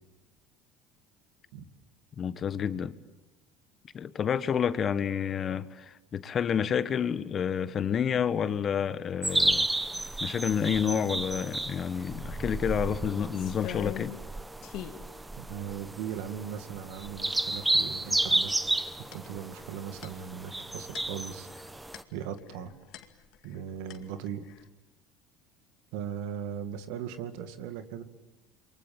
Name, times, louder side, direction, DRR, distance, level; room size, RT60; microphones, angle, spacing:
voice 1, 2.2-2.9 3.9-9.7 10.2-14.1, left 8 dB, 40° left, 1.4 m, -29 dB
sound 1, 9.2-22.0, right 2 dB, 10° right, 1.0 m, -32 dB
sound 2, 13.3-14.3 14.6-15.1 15.6-15.7 16.0-16.6 17.7-18.1 18.4-23.6 23.9-24.7, left 13 dB, 65° left, 2.3 m, -44 dB
voice 2, 15.4-18.5 19.1-21.5 22.1-22.7 23.4-24.5 25.9-28.0, right 8 dB, 75° right, 2.3 m, -38 dB
28.5 x 23.5 x 8.9 m
supercardioid pair, 95°, 0 cm